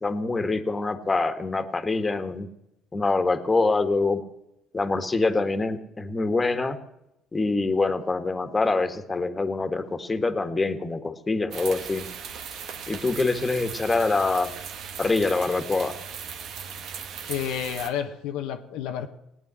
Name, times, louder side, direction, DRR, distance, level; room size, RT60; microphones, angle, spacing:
voice 1, 0.0-2.5 2.9-4.2 4.7-6.8 7.3-12.1 12.9-14.5 15.0-15.9, left 3 dB, 25° left, 9 dB, 1.7 m, -25 dB
sound 1, 11.5-17.9, right 7 dB, 65° right, 1.4 m, -38 dB
voice 2, 17.3-19.1, left 9 dB, 85° left, 5 dB, 1.0 m, -30 dB
18.0 x 9.1 x 7.6 m, 0.85 s
supercardioid pair, 75°, 0 cm